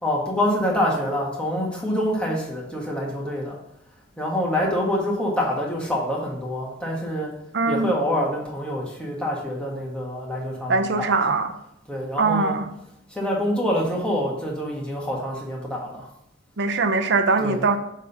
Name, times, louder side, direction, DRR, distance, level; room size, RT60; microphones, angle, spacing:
voice 1, 0.0-3.6 4.2-7.3 7.7-11.2 11.9-12.6 13.1-16.1 17.4-17.7, equal, 5° left, -3 dB, 1.6 m, -26 dB
voice 2, 7.5-7.9 10.7-11.5 12.2-12.7 16.6-17.8, right 3 dB, 60° right, 8 dB, 0.7 m, -21 dB
6.6 x 3.6 x 5.4 m, 0.82 s
head